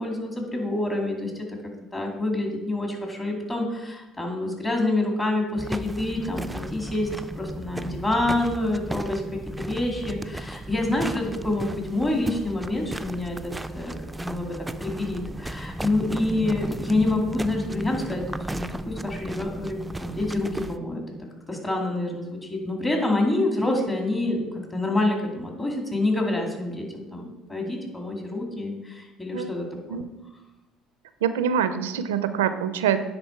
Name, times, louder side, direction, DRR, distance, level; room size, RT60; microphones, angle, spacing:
voice 1, 0.0-1.5 1.9-7.1 7.3-9.2 9.6-13.9 14.2-14.5 14.8-18.2 18.5-21.0 21.5-24.5 24.7-30.0, left 2 dB, 20° left, 1 dB, 2.4 m, -27 dB
sound 1, 5.6-20.8, right 1 dB, 10° right, 0.4 m, -35 dB
voice 2, 31.2-33.0, right 8 dB, 90° right, 11 dB, 0.4 m, -24 dB
9.8 x 4.1 x 4.5 m, 1.0 s
hypercardioid pair, 70°, 0 cm